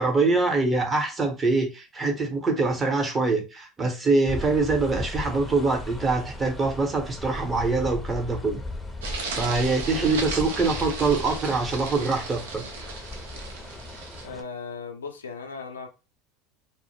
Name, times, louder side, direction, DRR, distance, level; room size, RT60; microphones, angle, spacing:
voice 1, 0.0-8.6 9.3-12.6, right 3 dB, 25° right, 0.8 m, -24 dB
sound 1, 4.3-14.4, left 2 dB, 5° left, 0.6 m, -37 dB
sound 2, 9.0-14.3, right 4 dB, 75° right, 0.4 m, -35 dB
voice 2, 14.2-15.9, left 5 dB, 90° left, 0.4 m, -37 dB
2.1 x 2.0 x 3.1 m
hypercardioid pair, 80°, 0 cm